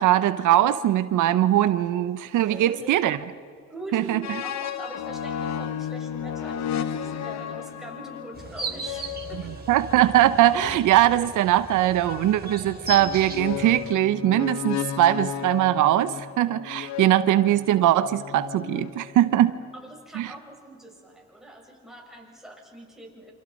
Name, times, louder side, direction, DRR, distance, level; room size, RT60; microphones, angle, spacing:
voice 1, 0.0-3.2 3.9-4.2 9.7-19.5 20.2-20.3, right 13 dB, 85° right, 13 dB, 0.8 m, -21 dB
voice 2, 2.5-3.1 3.7-9.6 19.7-23.3, right 1 dB, ahead, -2 dB, 7.3 m, -42 dB
sound 1, 4.2-10.9 12.0-19.4, left 9 dB, 65° left, 1.1 m, -34 dB
sound 2, 8.3-13.9, right 3 dB, 30° right, 3.5 m, -37 dB
28.5 x 27.0 x 5.3 m, 2.3 s
cardioid pair, 90°, 30 cm